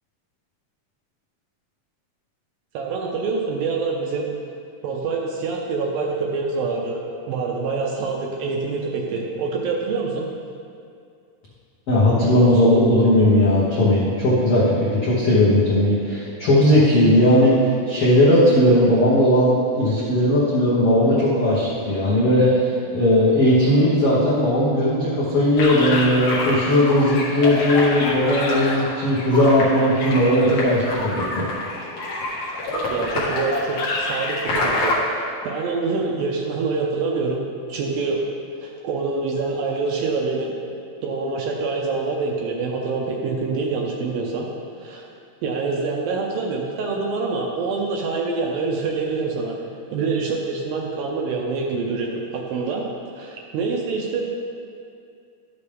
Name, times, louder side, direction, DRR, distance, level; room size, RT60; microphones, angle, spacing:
voice 1, 2.7-4.3 4.8-7.0 7.3-10.3 32.7-37.4 37.7-38.3 38.6-40.5 41.0-44.5 44.8-45.1 45.4-49.6 49.9-52.8 53.2-54.3, right 4 dB, 75° right, -1 dB, 2.2 m, -26 dB
voice 2, 11.9-30.9 31.1-31.4, left 1 dB, 75° left, -8 dB, 1.3 m, -17 dB
sound 1, 25.6-35.0, left 2 dB, 55° left, 2.3 m, -26 dB
12.0 x 6.9 x 3.4 m, 2.3 s
omnidirectional pair, 4.7 m